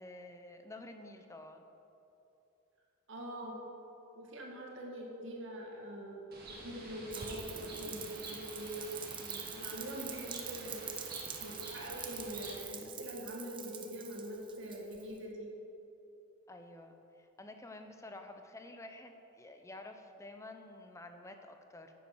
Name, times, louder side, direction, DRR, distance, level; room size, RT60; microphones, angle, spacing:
voice 1, 0.0-1.7 9.2-9.5 16.5-21.9, left 2 dB, 15° left, 6 dB, 0.7 m, -50 dB
voice 2, 3.1-3.5 4.1-6.4 6.6-8.9 9.4-10.9 11.4-15.5, right 1 dB, 65° right, -1 dB, 2.0 m, -43 dB
Bird, 6.3-12.6, right 2 dB, 50° right, 1.9 m, -49 dB
Rain, 7.1-15.2, right 8 dB, 25° right, 0.7 m, -45 dB
9.6 x 8.4 x 6.3 m, 2.9 s
head